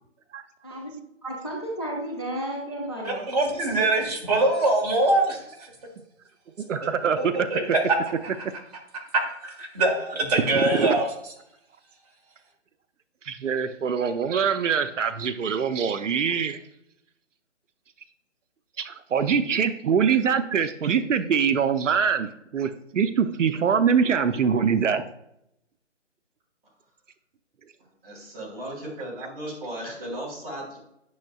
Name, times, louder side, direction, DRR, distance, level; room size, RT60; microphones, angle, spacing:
voice 1, 1.2-3.3, right 1 dB, 20° left, -3 dB, 0.6 m, -32 dB
voice 2, 3.0-5.4 7.2-7.6 9.4-11.1, right 2 dB, 30° right, -1 dB, 1.6 m, -23 dB
voice 3, 6.7-7.6 10.5-11.0 13.2-16.6 18.8-25.0, right 7 dB, 80° right, 10 dB, 0.6 m, -24 dB
voice 4, 27.8-30.8, right 1 dB, 10° right, -8 dB, 1.7 m, -36 dB
9.4 x 6.3 x 2.3 m, 0.80 s
hypercardioid pair, 175°, 37 cm